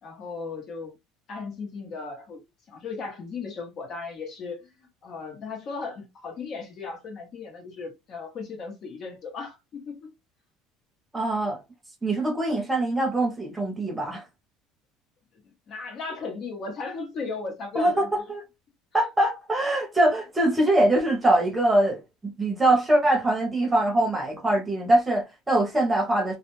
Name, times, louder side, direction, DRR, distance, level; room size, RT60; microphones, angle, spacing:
voice 1, 0.0-0.9 1.3-10.1 15.7-18.1, left 4 dB, 45° left, 0.9 m, -36 dB
voice 2, 11.1-11.6 12.0-14.2 17.8-18.4 18.9-26.4, right 1 dB, 15° right, 0.8 m, -23 dB
2.3 x 2.1 x 3.0 m
supercardioid pair, 110°, 0 cm